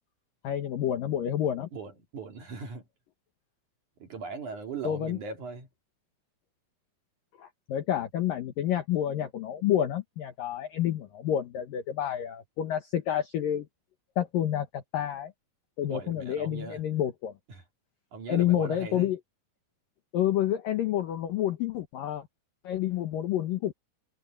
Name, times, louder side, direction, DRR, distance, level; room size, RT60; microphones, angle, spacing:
voice 1, 0.4-1.7 4.8-5.2 7.4-13.7 14.2-15.3 15.8-17.3 18.3-19.2 20.1-22.3 22.6-23.7, left 11 dB, 70° left, 2.1 m, -29 dB
voice 2, 1.7-2.8 4.0-5.7 15.9-16.8 18.1-19.1, right 4 dB, 45° right, 3.1 m, -39 dB
omnidirectional pair, 5.7 m